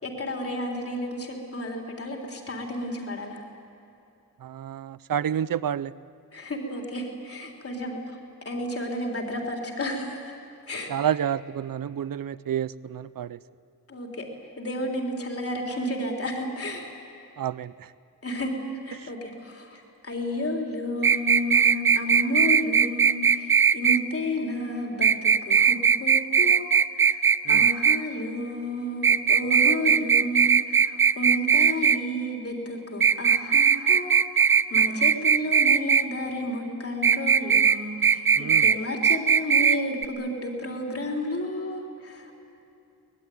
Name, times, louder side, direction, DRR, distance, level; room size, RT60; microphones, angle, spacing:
voice 1, 0.0-3.4 6.3-8.2 8.5-10.4 10.7-10.9 13.9-14.3 14.6-16.9 18.2-18.5 18.8-42.3, left 1 dB, 45° left, 1 dB, 3.6 m, -32 dB
voice 2, 4.4-5.9 10.9-13.4 17.4-17.9 19.0-19.1 27.4-27.7 38.4-38.7, right 9 dB, 80° right, 17 dB, 0.7 m, -29 dB
sound 1, 21.0-24.0 25.0-28.0 29.0-32.0 33.0-36.0 37.0-37.8 38.0-38.8 39.0-39.8 40.0-40.1, right 6 dB, 35° right, 0.5 m, -19 dB
24.0 x 20.5 x 9.2 m, 2.9 s
wide cardioid pair, 180°, 34 cm